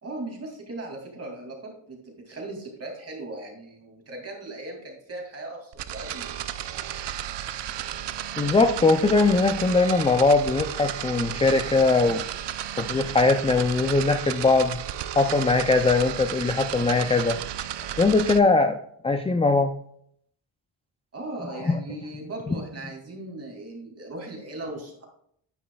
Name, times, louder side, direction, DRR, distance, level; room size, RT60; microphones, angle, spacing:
voice 1, 0.0-6.4 7.2-7.4 21.1-25.1, right 2 dB, 30° right, 0 dB, 2.5 m, -38 dB
sound 1, 5.7-18.4, right 11 dB, 65° right, 0.6 m, -33 dB
voice 2, 8.4-12.2 12.8-14.8 15.2-17.4 18.0-18.8 19.0-19.7 21.6-21.8, left 3 dB, 15° left, 6 dB, 0.4 m, -21 dB
10.0 x 9.3 x 2.3 m, 0.67 s
wide cardioid pair, 160°, 46 cm